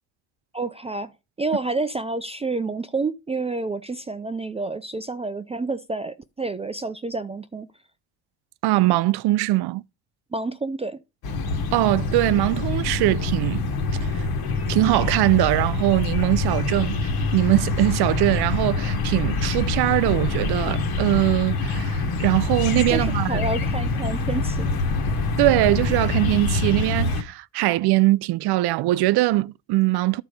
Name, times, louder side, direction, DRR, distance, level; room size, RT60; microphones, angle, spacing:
voice 1, 0.5-1.1 1.4-7.7 10.3-11.0 22.9-24.7, right 3 dB, 15° right, 0.4 m, -29 dB
voice 2, 8.6-9.8 11.7-13.7 14.0-14.3 14.7-23.5 25.4-30.2, right 17 dB, 60° right, 0.5 m, -21 dB
sound 1, 11.2-27.2, left 3 dB, 55° left, 1.6 m, -25 dB
11.5 x 4.1 x 5.1 m
cardioid pair, 110°, 44 cm